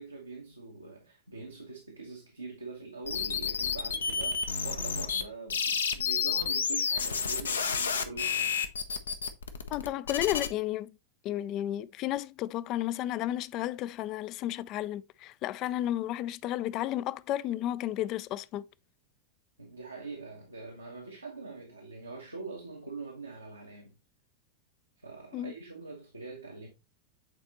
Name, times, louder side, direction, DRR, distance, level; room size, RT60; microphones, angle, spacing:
voice 1, 0.0-8.6 19.6-23.9 25.0-26.7, right 3 dB, 85° right, 1.2 m, -43 dB
sound 1, 3.1-5.2 5.5-10.5, left 6 dB, 70° left, 0.7 m, -30 dB
voice 2, 9.7-10.9 11.2-18.6 25.3-25.5, left 13 dB, 40° left, 0.4 m, -32 dB
8.3 x 4.1 x 2.9 m
figure-of-eight pair, 90°, 0 cm